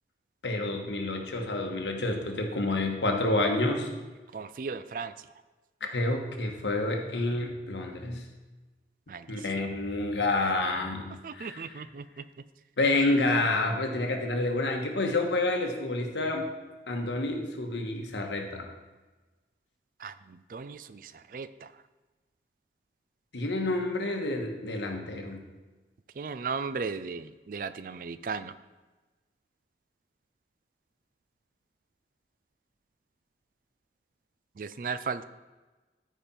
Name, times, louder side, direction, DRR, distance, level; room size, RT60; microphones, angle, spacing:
voice 1, 0.4-3.9 5.9-8.2 9.3-11.8 12.8-16.4 16.9-18.7 23.3-25.4, left 2 dB, 85° left, 3 dB, 1.4 m, -29 dB
voice 2, 4.3-5.1 9.1-9.3 11.2-12.0 20.0-20.1 20.5-21.7 26.2-28.5 34.6-35.2, right 5 dB, 50° right, 14 dB, 0.4 m, -36 dB
13.0 x 5.1 x 4.3 m, 1.2 s
head